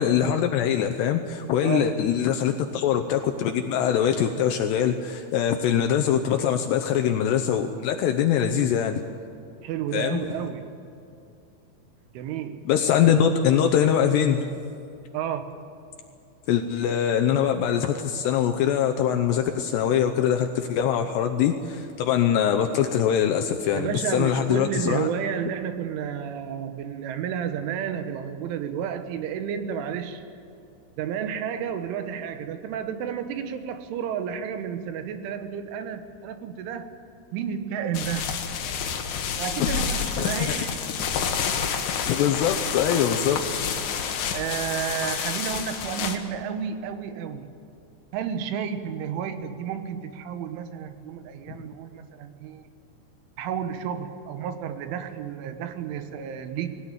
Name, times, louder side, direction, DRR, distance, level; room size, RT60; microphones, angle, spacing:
voice 1, 0.0-9.0 9.9-10.2 12.7-14.4 16.5-25.1 40.2-40.6 42.1-43.4, left 9 dB, 80° left, 5 dB, 2.5 m, -23 dB
voice 2, 9.6-10.8 12.2-12.6 15.1-15.6 23.7-30.2 31.0-36.9 37.3-38.3 39.4-40.8 44.3-47.5 48.1-52.7 53.4-56.8, right 8 dB, 80° right, 9 dB, 3.5 m, -31 dB
sound 1, 37.9-46.2, left 7 dB, 65° left, 2.2 m, -29 dB
20.5 x 17.5 x 9.1 m, 2.6 s
omnidirectional pair, 5.7 m